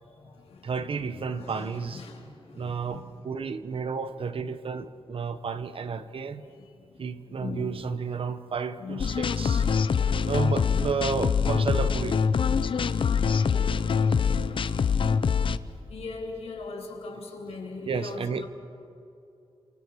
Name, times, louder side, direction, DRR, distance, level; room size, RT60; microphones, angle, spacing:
voice 1, 0.0-0.7 1.1-3.3 6.4-7.8 8.8-9.8 13.2-14.0 15.9-18.5, left 3 dB, 75° left, 1 dB, 3.6 m, -41 dB
voice 2, 0.6-2.0 2.5-6.4 7.0-9.6 10.3-12.2 17.9-18.5, right 5 dB, 60° right, 11 dB, 1.1 m, -32 dB
sound 1, 9.0-15.6, left 6 dB, 55° left, 0.7 m, -24 dB
30.0 x 27.5 x 4.8 m, 2.6 s
wide cardioid pair, 110°, 10 cm